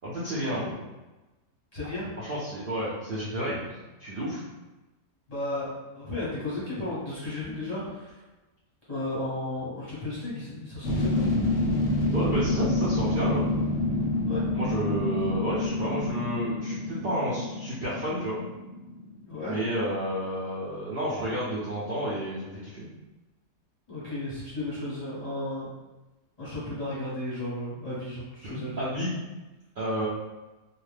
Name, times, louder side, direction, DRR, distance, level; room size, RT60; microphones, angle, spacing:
voice 1, 0.0-0.7 2.2-3.7 4.0-4.4 12.1-13.4 14.5-18.4 19.5-22.9 28.4-29.1 29.8-30.1, equal, 85° right, -8 dB, 0.4 m, -31 dB
voice 2, 1.7-2.1 5.3-8.2 8.9-11.3 14.2-14.4 19.3-19.6 23.9-25.6 26.4-28.8, left 2 dB, 35° left, -9 dB, 0.7 m, -34 dB
sound 1, 10.8-19.4 19.7-19.8, left 1 dB, 65° left, 0.8 m, -28 dB
2.6 x 2.2 x 3.2 m, 1.1 s
omnidirectional pair, 1.7 m